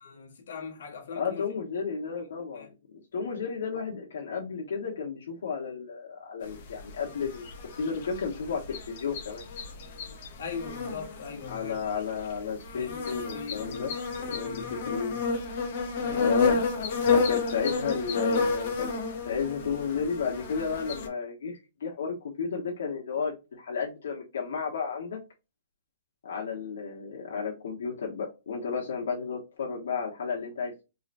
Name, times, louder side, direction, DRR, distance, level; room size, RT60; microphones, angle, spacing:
voice 1, 0.0-1.4 2.5-2.7 10.4-11.8 12.7-13.9 14.3-15.2 16.0-16.3, left 5 dB, 70° left, 1.4 m, -41 dB
voice 2, 1.2-2.7 3.1-7.5 7.8-9.4 11.5-13.9 14.2-15.2 16.1-16.6 17.1-18.9 19.2-25.2 26.2-30.8, left 6 dB, 90° left, 1.1 m, -33 dB
sound 1, 6.4-21.1, left 4 dB, 40° left, 0.9 m, -30 dB
3.9 x 3.1 x 2.5 m
hypercardioid pair, 175°, 0 cm